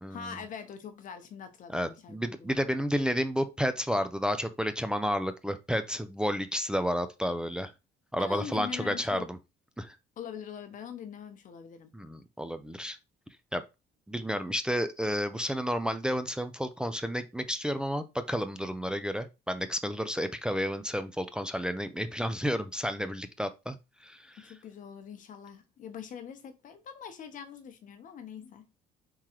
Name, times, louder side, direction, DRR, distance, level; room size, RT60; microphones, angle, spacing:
voice 1, 0.1-2.6 8.2-9.3 10.2-11.9 24.4-28.7, left 7 dB, 50° left, 0.8 m, -43 dB
voice 2, 1.7-7.7 8.1-9.2 9.8-10.0 11.9-13.0 13.5-13.6 14.1-24.4, equal, 5° right, 0.3 m, -31 dB
3.7 x 3.0 x 2.9 m
cardioid pair, 110°, 17 cm